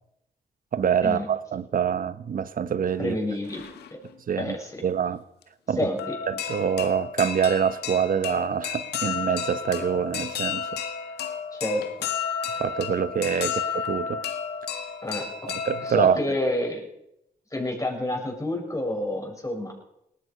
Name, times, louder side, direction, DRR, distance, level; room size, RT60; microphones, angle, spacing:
voice 1, 0.7-3.2 4.3-4.5 4.8-5.2 5.7-5.8 6.3-10.7 12.5-14.2 15.5-16.2, right 7 dB, 60° right, 1.0 m, -25 dB
sound 1, 2.9-3.0 3.4-4.1 5.4-5.5 6.0-16.0, left 7 dB, 80° left, 1.6 m, -32 dB
voice 2, 3.0-3.6 3.9-4.0 4.4-4.8 5.8-6.1 11.5-12.1 13.4-13.6 15.0-15.5 15.8-16.9 17.5-19.8, left 1 dB, 20° left, 7.5 m, -29 dB
19.0 x 13.5 x 5.6 m
supercardioid pair, 50°, 17 cm